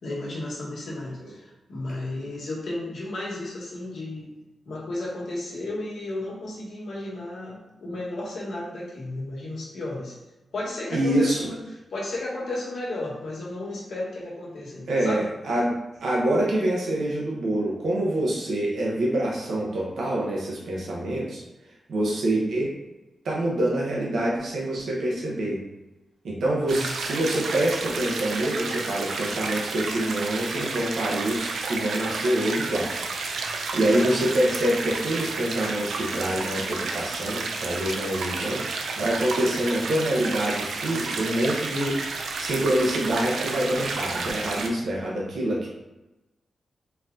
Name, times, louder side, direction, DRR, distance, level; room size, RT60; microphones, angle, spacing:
voice 1, 0.0-4.3 4.6-10.1 10.5-15.3 26.6-26.9 33.8-34.2, left 2 dB, 60° left, -4 dB, 1.4 m, -33 dB
voice 2, 10.9-11.4 14.9-15.7 16.0-21.4 21.9-22.7 23.2-25.6 26.2-32.9 33.7-42.0 42.4-45.7, right 1 dB, 65° right, -4 dB, 1.0 m, -26 dB
sound 1, 26.7-44.7, right 3 dB, 85° right, 0.5 m, -31 dB
4.4 x 2.8 x 3.8 m, 1.0 s
wide cardioid pair, 180°, 0 cm